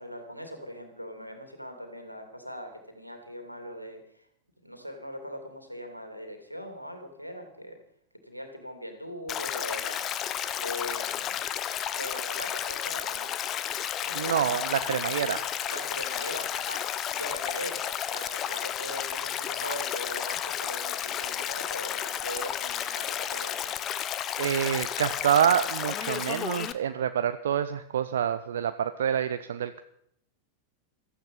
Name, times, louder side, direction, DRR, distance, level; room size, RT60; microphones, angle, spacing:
voice 1, 0.0-4.2 4.6-7.8 8.3-10.0 10.6-11.4 11.9-13.3 14.0-14.6 15.7-16.8 17.2-23.7, equal, 90° right, 5 dB, 2.8 m, -40 dB
Stream, 9.3-26.7, left 10 dB, 30° left, 1.0 m, -32 dB
voice 2, 14.1-15.5 24.4-29.8, right 9 dB, 60° right, 11 dB, 0.7 m, -27 dB
16.0 x 14.0 x 5.5 m, 0.71 s
figure-of-eight pair, 90°, 0 cm